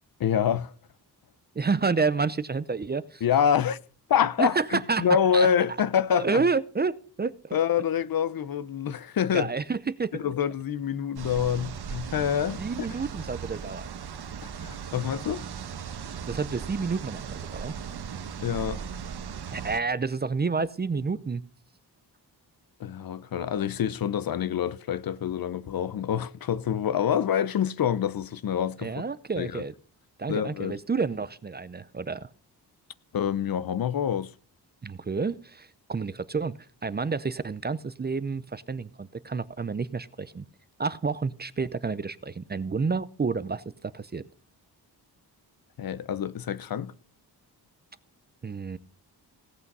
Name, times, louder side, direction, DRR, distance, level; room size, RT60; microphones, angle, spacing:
voice 1, 0.2-0.7 3.2-3.8 4.1-6.4 7.5-9.5 10.1-12.9 14.4-15.4 18.4-18.8 22.8-28.9 29.4-29.6 30.3-30.8 33.1-34.3 45.8-46.9, left 8 dB, 60° left, 0.7 m, -26 dB
voice 2, 1.5-3.2 4.4-5.1 5.3-5.5 6.2-7.5 9.3-10.2 12.6-13.9 16.3-17.7 19.5-21.4 28.8-29.7 30.2-32.3 34.8-40.5 40.8-44.2 48.4-48.8, right 4 dB, 25° right, 0.6 m, -29 dB
sound 1, 11.2-19.8, right 7 dB, 75° right, 1.3 m, -37 dB
17.0 x 8.5 x 5.4 m
wide cardioid pair, 165°, 39 cm